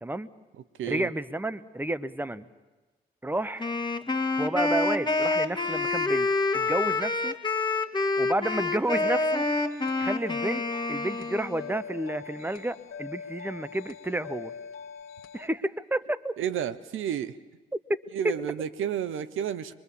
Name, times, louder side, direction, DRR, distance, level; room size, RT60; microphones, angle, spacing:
voice 1, 0.9-2.5 3.2-3.7 4.4-6.3 6.5-7.3 8.2-9.4 10.0-14.5 15.3-16.3 17.9-18.4, right 1 dB, 10° right, 13 dB, 1.2 m, -31 dB
Wind instrument woodwind instrument, 3.6-11.8, left 3 dB, 20° left, 2.0 m, -27 dB
sound 1, 8.8-15.5, left 6 dB, 75° left, 1.5 m, -42 dB
voice 2, 16.4-17.4 18.1-19.7, right 9 dB, 70° right, 14 dB, 0.9 m, -31 dB
23.0 x 23.0 x 7.1 m, 1.2 s
hypercardioid pair, 45°, 21 cm